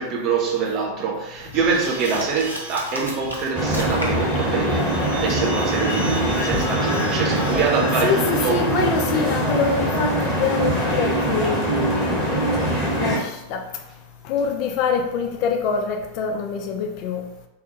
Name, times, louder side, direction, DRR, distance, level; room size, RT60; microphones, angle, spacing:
voice 1, 0.0-9.3, right 5 dB, 35° right, 0.6 m, -25 dB
sound 1, 1.5-14.1, right 1 dB, 70° right, 0.7 m, -39 dB
sound 2, 1.7-4.3 4.7-8.5, equal, 85° left, 0.6 m, -36 dB
sound 3, 3.5-13.2, right 1 dB, 5° left, 1.0 m, -23 dB
voice 2, 8.0-13.7 14.2-17.2, left 6 dB, 45° left, 0.3 m, -25 dB
3.4 x 2.2 x 2.8 m
figure-of-eight pair, 90°, 0 cm